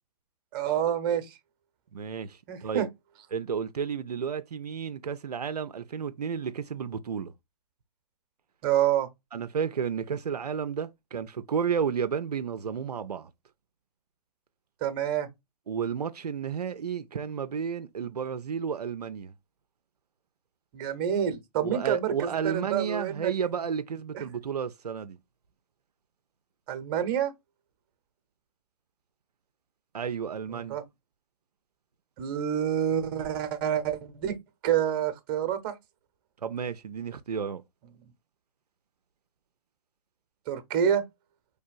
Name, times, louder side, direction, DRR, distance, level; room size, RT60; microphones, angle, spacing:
voice 1, 0.5-1.4 2.5-2.9 8.6-9.1 14.8-15.3 20.7-23.3 24.1-24.2 26.7-27.3 30.5-30.8 32.2-34.4 34.6-35.7 40.5-41.0, right 9 dB, 35° right, 0.8 m, -28 dB
voice 2, 1.9-2.9 3.3-7.3 9.3-13.3 15.7-19.3 21.6-25.2 29.9-30.8 36.4-37.6, right 7 dB, 80° right, 0.4 m, -32 dB
4.3 x 3.3 x 2.4 m
figure-of-eight pair, 120°, 20 cm